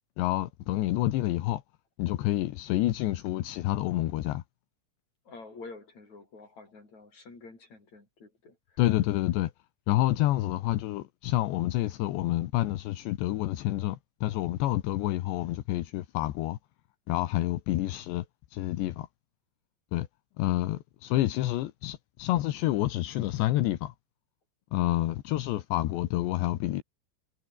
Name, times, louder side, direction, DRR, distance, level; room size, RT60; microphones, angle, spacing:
voice 1, 0.2-1.6 2.0-4.4 8.8-9.5 9.9-16.6 17.1-18.2 18.5-19.1 19.9-20.1 20.4-23.9 24.7-26.8, left 15 dB, 80° left, 3.4 m, -28 dB
voice 2, 5.3-8.8, left 3 dB, 40° left, 9.2 m, -48 dB
omnidirectional pair, 5.1 m